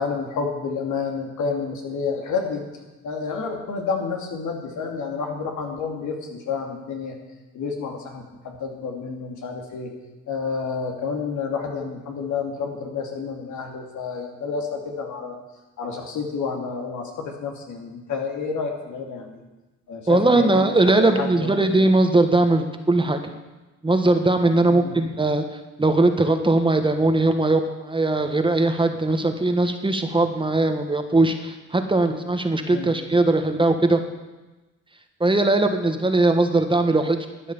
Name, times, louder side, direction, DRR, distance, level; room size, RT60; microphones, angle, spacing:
voice 1, 0.0-2.6 3.0-7.2 7.5-9.9 10.3-15.3 15.8-19.4 19.9-21.7 24.7-24.9 32.7-32.9, left 5 dB, 80° left, 2 dB, 2.7 m, -29 dB
voice 2, 20.1-23.2 23.8-25.4 25.8-34.0 35.2-37.2, right 2 dB, 15° right, 6 dB, 1.4 m, -20 dB
12.5 x 9.3 x 7.2 m, 1.1 s
cardioid pair, 90°, 30 cm